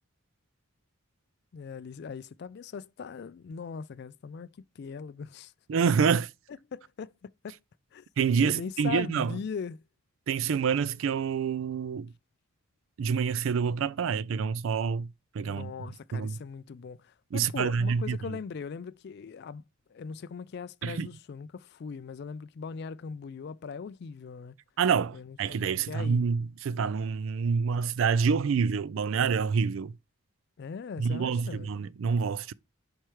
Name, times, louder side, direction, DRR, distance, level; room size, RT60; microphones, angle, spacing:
voice 1, 1.5-4.5 4.8-5.5 6.7-7.6 7.9-8.0 8.4-9.8 15.4-19.6 19.9-24.6 25.1-26.3 30.6-31.7, left 5 dB, 50° left, 0.3 m, -40 dB
voice 2, 5.7-6.3 8.2-9.3 10.3-12.1 13.0-15.7 16.1-16.4 17.3-18.2 20.8-21.1 24.8-29.9 31.0-32.5, right 6 dB, 65° right, 0.4 m, -27 dB
4.8 x 4.4 x 4.5 m
head